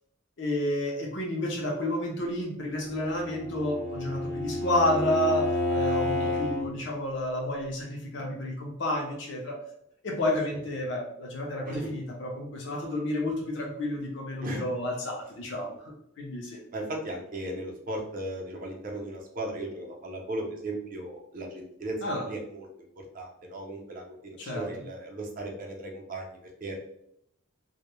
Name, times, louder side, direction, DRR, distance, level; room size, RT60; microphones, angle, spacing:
voice 1, 0.4-9.6 10.0-16.6 22.0-22.3 24.4-24.7, left 1 dB, 60° left, 0 dB, 0.5 m, -30 dB
Bowed string instrument, 2.9-6.7, left 1 dB, 75° left, 0.9 m, -30 dB
voice 2, 16.7-22.7 23.1-26.8, right 1 dB, 40° right, 1 dB, 0.5 m, -36 dB
2.1 x 2.0 x 2.9 m, 0.74 s
head